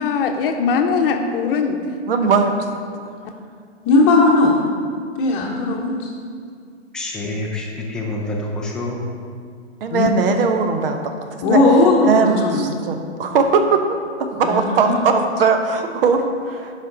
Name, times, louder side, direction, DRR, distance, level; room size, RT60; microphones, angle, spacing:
voice 1, 0.0-1.8 2.2-2.3 9.9-10.1, left 5 dB, 50° left, 5 dB, 0.9 m, -20 dB
voice 2, 2.1-2.7 9.8-11.0 11.5-11.6 12.0-16.7, right 5 dB, 50° right, 6 dB, 1.0 m, -19 dB
voice 3, 3.8-4.5 5.2-5.9 11.4-12.6 14.4-15.0, left 2 dB, 30° left, -4 dB, 1.0 m, -16 dB
voice 4, 6.9-9.0, left 2 dB, ahead, -2 dB, 0.4 m, -27 dB
11.0 x 5.2 x 3.9 m, 2.2 s
hypercardioid pair, 125°, 35 cm